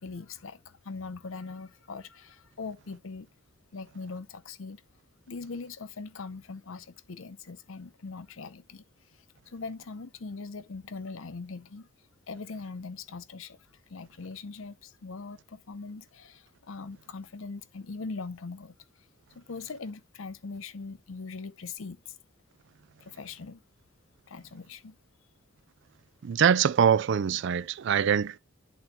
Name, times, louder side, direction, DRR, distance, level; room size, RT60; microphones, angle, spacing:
voice 1, 0.0-3.3 3.7-4.8 5.3-8.8 9.5-11.9 12.3-13.6 13.9-18.7 19.3-22.1 23.0-23.6 24.3-25.0, left 4 dB, 70° left, 0.6 m, -41 dB
voice 2, 26.2-28.4, right 7 dB, 55° right, 0.3 m, -23 dB
11.0 x 3.9 x 2.8 m
head